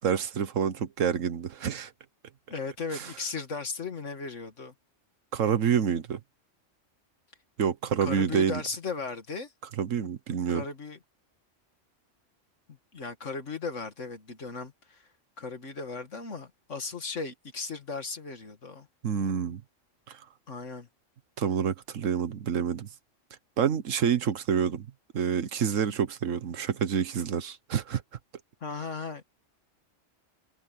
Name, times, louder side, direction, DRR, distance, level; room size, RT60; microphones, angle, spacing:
voice 1, 0.0-1.9 2.9-3.1 5.3-6.2 7.6-8.6 9.8-10.6 19.0-19.6 20.1-20.2 21.4-22.9 23.6-24.9 25.1-28.0, right 7 dB, 80° right, 1.4 m, -27 dB
voice 2, 2.5-4.7 8.0-9.5 10.5-11.0 12.7-15.1 15.4-18.9 20.5-20.9 28.6-29.2, left 4 dB, 70° left, 2.3 m, -36 dB
omnidirectional pair, 1.3 m